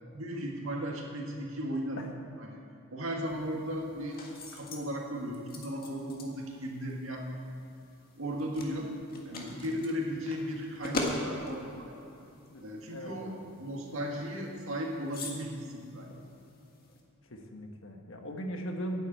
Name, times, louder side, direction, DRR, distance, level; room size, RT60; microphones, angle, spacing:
voice 1, 0.1-2.0 2.4-2.6 2.9-4.2 4.5-7.3 8.2-8.9 9.3-12.1 12.6-16.1, equal, 70° right, 0 dB, 1.9 m, -36 dB
sound 1, 3.2-17.0, left 2 dB, 45° left, 1.7 m, -43 dB
voice 2, 12.5-13.5 17.3-19.0, equal, 65° left, 3 dB, 1.3 m, -39 dB
10.5 x 8.1 x 8.7 m, 2.8 s
head